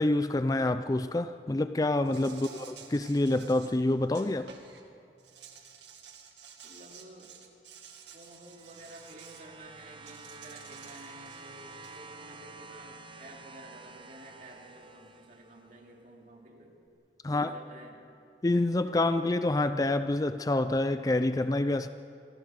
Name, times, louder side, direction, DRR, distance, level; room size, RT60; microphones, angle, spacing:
voice 1, 0.0-4.5 17.2-17.5 18.4-21.9, left 2 dB, 20° left, 0.4 m, -27 dB
Insect, 2.1-4.8 5.2-9.5 10.1-12.0, right 7 dB, 75° right, 2.0 m, -52 dB
voice 2, 6.6-7.3 8.1-16.8 17.3-18.0, right 1 dB, 45° right, 2.9 m, -51 dB
sound 1, 8.0-15.8 16.9-17.0, right 4 dB, 25° right, 1.0 m, -50 dB
26.0 x 16.0 x 6.6 m
head